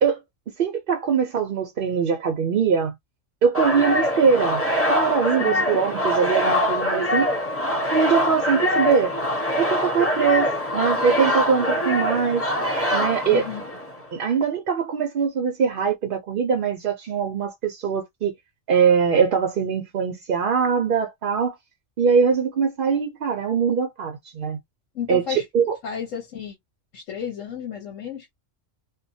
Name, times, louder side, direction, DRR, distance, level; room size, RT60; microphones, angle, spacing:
voice 1, 0.6-2.9 3.4-4.6 4.9-7.3 7.9-9.1 9.6-12.5 12.9-13.5 14.1-18.3 18.7-21.5 22.0-24.6 25.1-25.8, right 6 dB, 55° right, 0.6 m, -22 dB
sound 1, 3.5-14.0, left 1 dB, 10° left, 1.1 m, -23 dB
voice 2, 13.3-13.6 24.9-25.4 25.8-26.6 26.9-28.3, left 8 dB, 80° left, 1.3 m, -32 dB
2.9 x 2.2 x 2.6 m
omnidirectional pair, 1.3 m